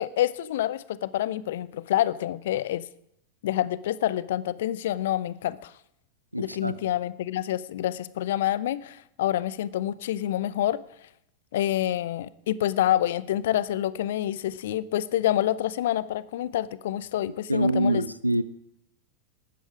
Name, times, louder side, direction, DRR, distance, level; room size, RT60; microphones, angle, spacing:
voice 1, 0.0-2.9 3.4-5.7 6.4-10.8 11.5-18.0, left 12 dB, 55° left, 19 dB, 0.6 m, -27 dB
voice 2, 6.3-6.8 17.5-18.4, right 1 dB, 90° right, 17 dB, 0.6 m, -25 dB
18.5 x 13.0 x 4.9 m, 0.76 s
figure-of-eight pair, 90°, 0 cm